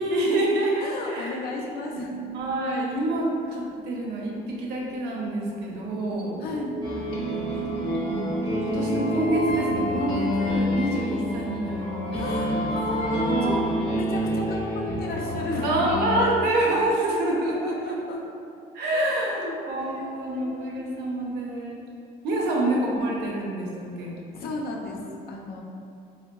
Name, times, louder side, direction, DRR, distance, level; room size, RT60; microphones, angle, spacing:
voice 1, 0.0-1.3 1.7-1.8 2.3-6.3 7.3-7.7 8.0-12.2 13.2-13.7 15.6-18.0 18.7-21.8 22.2-24.1, right 1 dB, 80° right, -3 dB, 0.6 m, -27 dB
voice 2, 0.8-2.2 6.4-6.8 12.1-15.9 17.0-17.1 17.4-18.2 18.9-20.7 22.4-23.0 24.3-25.0 25.3-25.6, left 2 dB, 65° left, -1 dB, 0.5 m, -34 dB
sound 1, 1.9-11.7, right 4 dB, 25° right, 0.5 m, -37 dB
sound 2, 6.8-16.3, left 1 dB, 30° left, 0.7 m, -28 dB
3.6 x 2.1 x 2.2 m, 2.4 s
cardioid pair, 110°, 17 cm